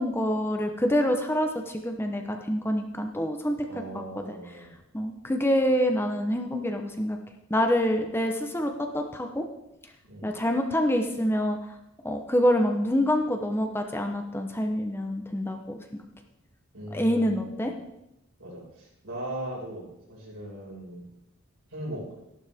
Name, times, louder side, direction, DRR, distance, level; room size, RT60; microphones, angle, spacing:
voice 1, 0.0-3.7 3.9-4.4 4.9-7.2 7.5-9.5 10.2-11.6 12.0-16.0 16.9-17.7, equal, 10° left, 4 dB, 0.9 m, -26 dB
voice 2, 3.6-4.8 10.0-10.4 16.7-17.7 18.4-21.1 21.7-22.1, right 1 dB, 80° right, -4 dB, 5.5 m, -39 dB
13.5 x 11.5 x 3.6 m, 0.86 s
head